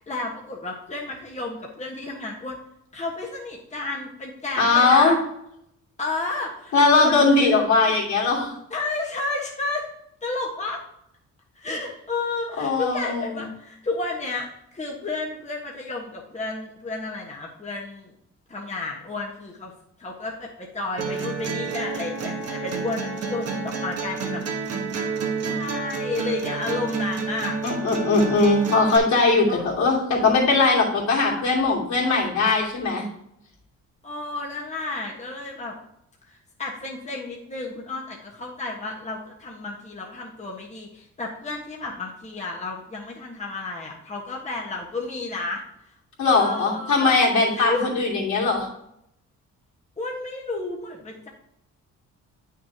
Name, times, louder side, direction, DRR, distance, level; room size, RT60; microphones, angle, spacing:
voice 1, 0.0-2.6 2.9-5.2 6.0-8.0 8.7-9.9 10.2-10.8 11.5-14.5 14.7-18.1 18.5-19.7 20.0-24.7 25.2-27.6 29.5-29.6 34.0-35.8 36.3-45.6 46.3-47.1 47.5-47.8 50.0-51.3, left 3 dB, 25° left, -2 dB, 1.3 m, -32 dB
voice 2, 4.6-5.2 6.7-8.5 12.6-13.4 27.6-33.1 46.2-48.7, left 3 dB, 70° left, -3 dB, 2.8 m, -20 dB
sound 1, 21.0-29.0, right 4 dB, 55° right, 1.4 m, -29 dB
8.9 x 6.3 x 2.8 m, 0.77 s
cardioid pair, 90°, 30 cm